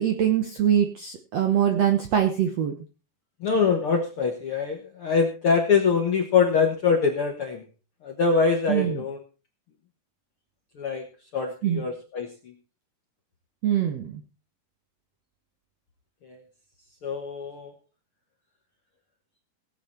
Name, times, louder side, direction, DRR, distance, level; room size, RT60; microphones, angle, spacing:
voice 1, 0.0-2.8 8.7-9.0 11.6-11.8 13.6-14.2, right 9 dB, 70° right, 5 dB, 1.6 m, -23 dB
voice 2, 3.4-7.6 8.0-9.2 10.8-11.1 11.3-12.5 16.2-16.4 17.0-17.7, left 5 dB, 60° left, 2 dB, 1.4 m, -24 dB
17.5 x 8.2 x 4.3 m, 0.34 s
omnidirectional pair, 4.4 m